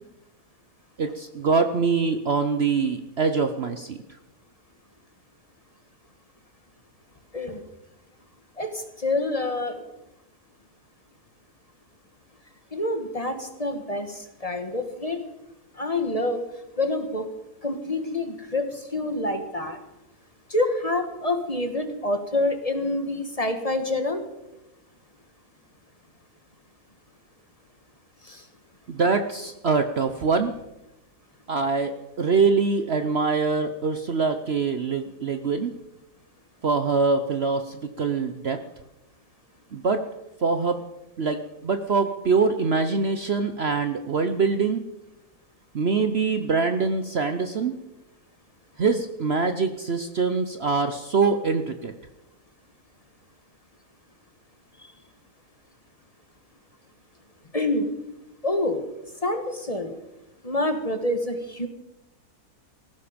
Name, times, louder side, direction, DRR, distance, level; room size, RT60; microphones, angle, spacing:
voice 1, 1.0-4.0 28.9-30.5 31.5-35.7 36.6-38.6 39.7-40.0 40.4-40.8 41.2-44.8 45.7-47.7 48.8-51.9, right 4 dB, 50° right, 8 dB, 1.0 m, -24 dB
voice 2, 8.6-9.9 12.7-15.2 15.7-16.4 16.8-17.3 17.6-19.8 20.5-24.2 28.2-28.4 54.8-54.9 57.5-57.9 58.4-58.8 59.2-59.9 60.4-61.7, left 2 dB, 25° left, 7 dB, 1.5 m, -27 dB
18.0 x 15.0 x 5.2 m, 0.95 s
omnidirectional pair, 1.6 m